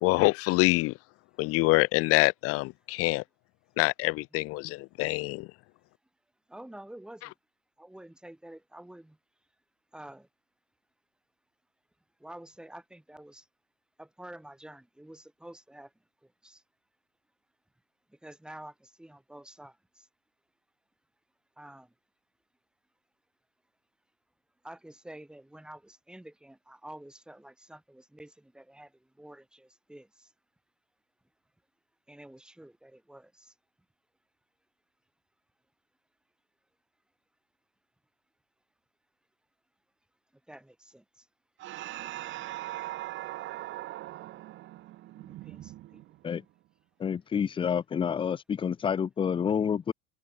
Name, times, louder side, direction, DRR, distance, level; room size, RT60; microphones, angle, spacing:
voice 1, 0.0-1.0 1.4-3.2 3.8-5.5, left 23 dB, 50° left, 1.9 m, -25 dB
voice 2, 6.5-7.3 7.8-9.2 9.9-10.3 12.2-13.5 14.0-15.9 16.2-16.6 18.1-20.1 21.6-21.9 24.6-30.3 32.1-33.5 40.5-41.3 45.1-46.0, right 1 dB, 5° right, 5.1 m, -49 dB
sound 1, 41.6-46.4, right 16 dB, 40° right, 3.7 m, -40 dB
voice 3, 47.0-49.9, left 7 dB, 15° left, 1.0 m, -28 dB
cardioid pair, 170°, 30 cm